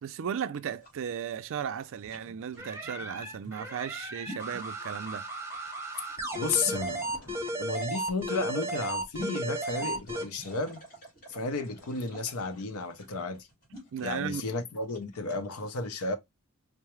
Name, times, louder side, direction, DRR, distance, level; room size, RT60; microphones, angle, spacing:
voice 1, 0.0-5.2 13.9-14.5, right 8 dB, 60° right, 0.4 m, -35 dB
sound 1, 0.8-15.5, right 1 dB, 45° left, 1.7 m, -49 dB
sound 2, 2.6-10.3, right 1 dB, 10° right, 0.8 m, -35 dB
voice 2, 6.3-10.8 11.3-13.5 14.0-16.2, left 3 dB, 75° left, 0.6 m, -33 dB
4.6 x 2.0 x 3.0 m
head